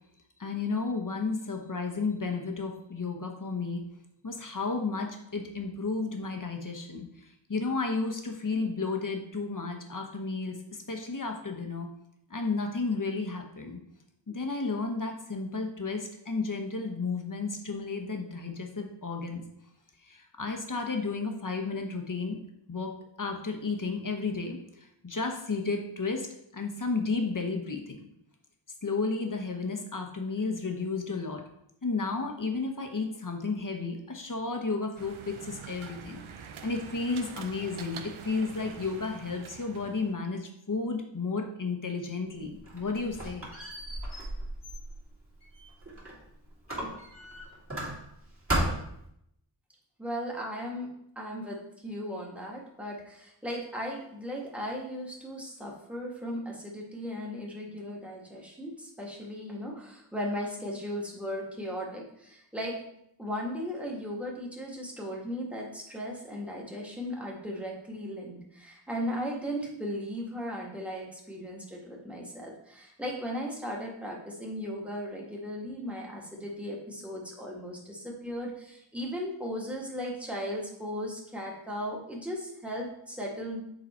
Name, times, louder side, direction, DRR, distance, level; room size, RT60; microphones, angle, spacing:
voice 1, 0.4-3.8 4.2-7.1 7.5-11.9 12.3-13.8 14.3-19.4 20.1-22.4 22.7-22.9 23.2-26.3 26.5-28.0 28.8-31.4 31.8-36.2 36.6-43.5, left 4 dB, 40° left, 3 dB, 1.1 m, -32 dB
sound 1, 34.9-40.1, right 6 dB, 85° right, 0.6 m, -45 dB
Squeak, 42.4-46.2 46.7-48.2 48.5-49.1, right 1 dB, 25° right, 2.3 m, -35 dB
voice 2, 50.0-50.9 51.2-62.8 63.2-83.6, equal, 5° right, -2 dB, 1.6 m, -37 dB
7.1 x 3.9 x 4.3 m, 0.76 s
wide cardioid pair, 60°, 47 cm